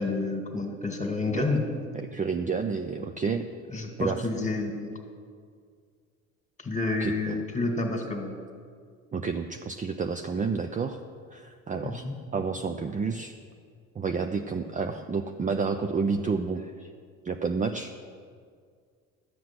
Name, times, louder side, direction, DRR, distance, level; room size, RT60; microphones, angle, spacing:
voice 1, 0.0-1.6 3.7-4.9 6.6-8.3 11.8-12.1, left 3 dB, 20° left, 3 dB, 2.1 m, -29 dB
voice 2, 1.9-3.4 4.0-4.2 7.0-7.4 9.1-11.0 11.3-12.0 12.3-13.3 13.9-16.9 17.2-17.9, right 5 dB, 20° right, 6 dB, 0.6 m, -30 dB
12.0 x 7.6 x 6.1 m, 2.1 s
hypercardioid pair, 65°, 40 cm